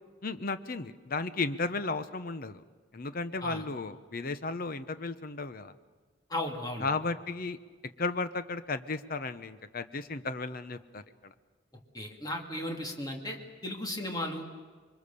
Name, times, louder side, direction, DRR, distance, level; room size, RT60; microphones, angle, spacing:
voice 1, 0.2-2.6 2.9-5.7 6.8-7.6 8.0-11.3, left 3 dB, 50° left, 12 dB, 0.9 m, -34 dB
voice 2, 6.3-6.9 11.9-14.5, left 1 dB, 20° left, 2 dB, 2.5 m, -36 dB
26.0 x 23.5 x 6.9 m, 1.5 s
head